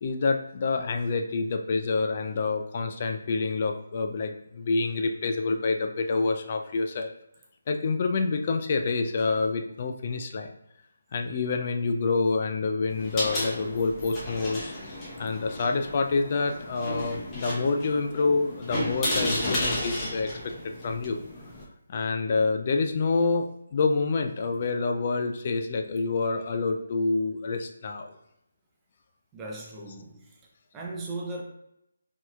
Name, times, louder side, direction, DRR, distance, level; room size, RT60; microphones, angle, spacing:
voice 1, 0.0-7.1 7.7-10.5 11.1-14.8 15.2-20.5 20.8-21.2 21.9-28.2, left 4 dB, 40° left, 5 dB, 0.3 m, -27 dB
sound 1, 12.9-21.6, left 1 dB, 15° left, 0.8 m, -33 dB
voice 2, 29.3-30.4 30.7-31.4, right 2 dB, 15° right, -2 dB, 0.6 m, -37 dB
4.1 x 3.0 x 2.3 m, 0.82 s
figure-of-eight pair, 150°, 0 cm